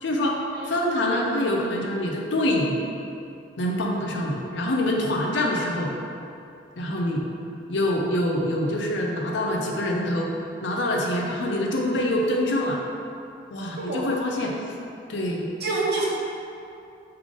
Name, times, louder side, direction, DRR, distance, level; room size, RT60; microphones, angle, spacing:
voice 1, 0.0-0.3 0.7-2.8 3.6-5.9 6.8-7.3 7.7-10.3 10.6-12.8 13.5-14.5 15.1-15.5, left 1 dB, 70° left, -1 dB, 0.6 m, -25 dB
voice 2, 15.6-16.1, right 3 dB, 55° right, -4 dB, 0.8 m, -27 dB
3.6 x 3.3 x 3.7 m, 2.5 s
head